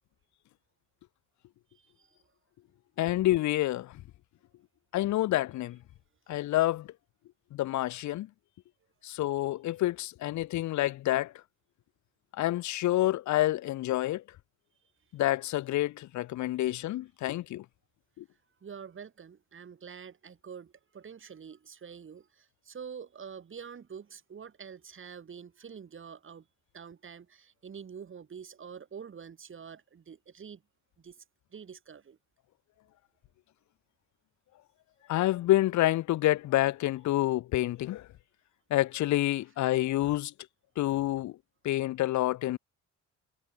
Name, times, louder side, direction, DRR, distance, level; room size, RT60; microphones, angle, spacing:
voice 1, 1.7-2.2 18.6-26.5 26.7-30.6 31.0-31.2 31.5-32.2, right 7 dB, 40° right, 2.4 m, -46 dB
voice 2, 3.0-4.0 4.9-5.8 6.3-6.9 7.5-8.3 9.0-11.3 12.4-14.2 15.1-17.6 18.2-18.3 35.1-38.1 38.7-40.3 40.8-41.4 41.6-42.6, left 15 dB, 70° left, 0.7 m, -28 dB
cardioid pair, 90°, 30 cm